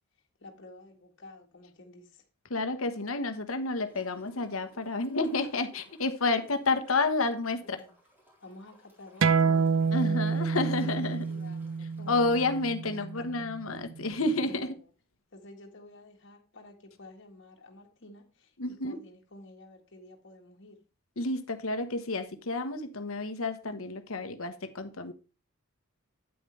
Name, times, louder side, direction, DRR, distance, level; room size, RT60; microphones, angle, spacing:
voice 1, 0.2-2.3 7.6-7.9 8.4-10.0 10.8-12.6 13.1-13.3 14.4-14.8 15.3-20.8, left 2 dB, 55° left, 1.7 m, -51 dB
voice 2, 2.5-7.8 9.9-11.2 12.1-14.7 18.6-19.0 21.2-25.1, left 3 dB, 80° left, 1.2 m, -30 dB
Gurgling / Toilet flush, 3.8-13.2 13.7-13.8, equal, 10° right, 4.0 m, -61 dB
sound 1, 9.2-14.4, right 5 dB, 65° right, 0.6 m, -28 dB
9.3 x 9.0 x 3.3 m
head